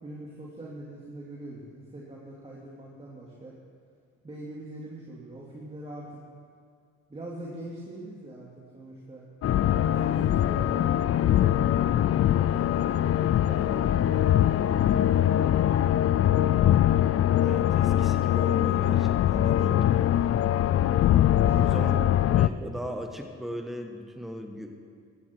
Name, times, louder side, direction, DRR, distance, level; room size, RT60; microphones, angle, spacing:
voice 1, 0.0-3.5 4.2-6.2 7.1-9.2 9.6-11.9 12.3-16.3 21.4-22.0, right 1 dB, 20° right, -5 dB, 2.8 m, -42 dB
sound 1, 9.4-22.5, left 11 dB, 50° left, 0.5 m, -22 dB
sound 2, 13.3-21.9, left 4 dB, 30° left, 3.9 m, -54 dB
voice 2, 17.4-20.0 21.6-24.8, equal, ahead, 4 dB, 1.5 m, -37 dB
15.5 x 14.5 x 4.6 m, 2.2 s
cardioid pair, 90°, 30 cm